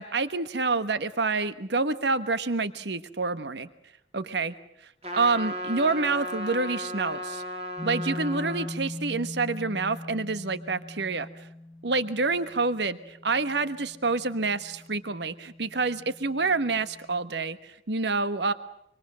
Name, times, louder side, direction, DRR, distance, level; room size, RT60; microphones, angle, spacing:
voice 1, 0.0-3.7 4.1-4.5 5.1-7.4 7.8-11.3 11.8-18.5, right 3 dB, 70° right, 13 dB, 1.2 m, -27 dB
Trumpet, 5.0-8.7, equal, 35° right, 3.3 m, -35 dB
sound 1, 7.8-17.2, left 1 dB, 25° left, 1.7 m, -41 dB
25.5 x 25.0 x 7.6 m, 0.77 s
head